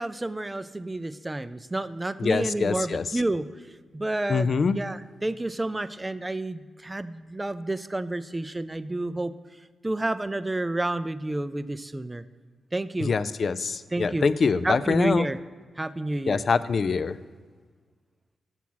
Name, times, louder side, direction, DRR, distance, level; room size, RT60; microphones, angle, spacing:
voice 1, 0.0-3.5 3.9-4.5 4.7-9.3 9.8-12.2 12.7-13.1 13.9-14.3 14.6-15.4 15.8-16.4, right 2 dB, 20° right, 13 dB, 0.4 m, -30 dB
voice 2, 2.2-3.2 4.3-4.8 13.0-15.3 16.3-17.2, left 5 dB, 55° left, 14 dB, 0.3 m, -24 dB
7.0 x 6.0 x 6.1 m, 1.5 s
cardioid pair, 70°, 0 cm